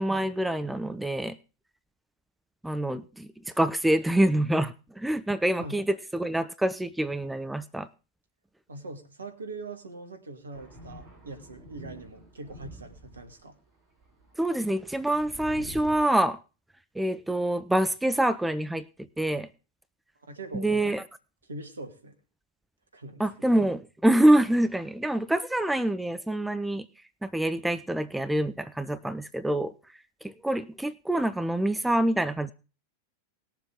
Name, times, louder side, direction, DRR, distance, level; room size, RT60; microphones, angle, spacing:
voice 1, 0.0-1.4 2.6-3.3 3.6-7.9 14.4-16.4 17.0-18.8 19.2-19.5 20.5-21.0 23.2-26.9 27.2-29.7 30.2-32.5, right 1 dB, 5° right, 13 dB, 0.6 m, -26 dB
voice 2, 8.7-13.6 20.2-20.9 21.5-22.2 22.9-23.5, right 2 dB, 75° right, 6 dB, 2.1 m, -42 dB
Thunder, 10.5-13.5 14.0-16.0, right 1 dB, 35° right, 7.1 m, -47 dB
19.5 x 7.3 x 3.6 m, 0.33 s
figure-of-eight pair, 90°, 0 cm